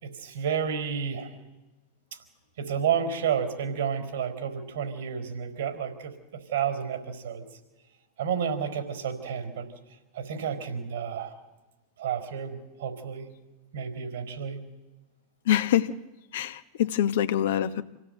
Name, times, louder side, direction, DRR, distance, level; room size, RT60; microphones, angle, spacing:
voice 1, 0.0-1.3 2.6-7.4 8.2-9.7 10.1-11.3 12.0-13.3 13.7-14.6, right 7 dB, 75° right, 7 dB, 4.5 m, -31 dB
voice 2, 15.5-15.9 16.3-17.8, left 11 dB, 65° left, 11 dB, 1.0 m, -25 dB
26.5 x 16.5 x 8.0 m, 1.1 s
hypercardioid pair, 90°, 0 cm